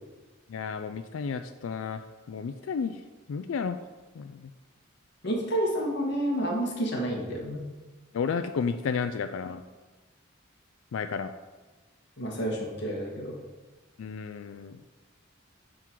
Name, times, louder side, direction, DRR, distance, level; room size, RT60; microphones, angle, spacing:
voice 1, 0.5-2.0 2.3-3.0 3.3-3.8 4.2-4.5 8.1-9.6 10.9-11.3 14.0-14.8, left 5 dB, 85° left, 9 dB, 0.4 m, -32 dB
voice 2, 5.2-7.6 12.2-13.4, right 1 dB, 55° left, -1 dB, 1.6 m, -29 dB
10.0 x 3.9 x 4.6 m, 1.2 s
head